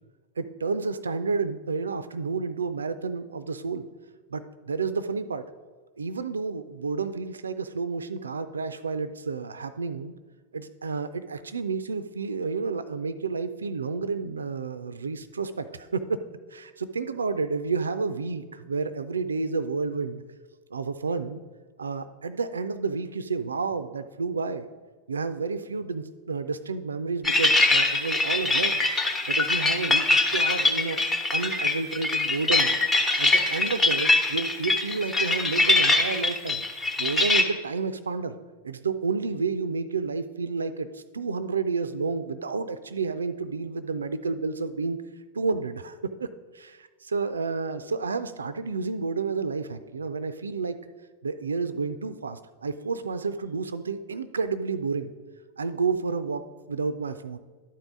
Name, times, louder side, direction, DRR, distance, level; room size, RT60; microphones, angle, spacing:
voice 1, 0.4-3.8 4.3-5.5 6.0-10.1 10.5-16.2 16.5-20.2 20.7-21.4 21.8-24.6 25.1-28.8 29.3-31.0 31.3-32.8 33.2-36.6 37.0-38.3 38.6-45.0 45.3-46.3 46.5-50.8 51.2-55.1 55.6-57.4, right 4 dB, 75° right, 12 dB, 0.4 m, -30 dB
sound 1, 27.2-37.4, left 2 dB, 20° left, 1.0 m, -23 dB
11.5 x 4.6 x 5.2 m, 1.4 s
figure-of-eight pair, 90°, 0 cm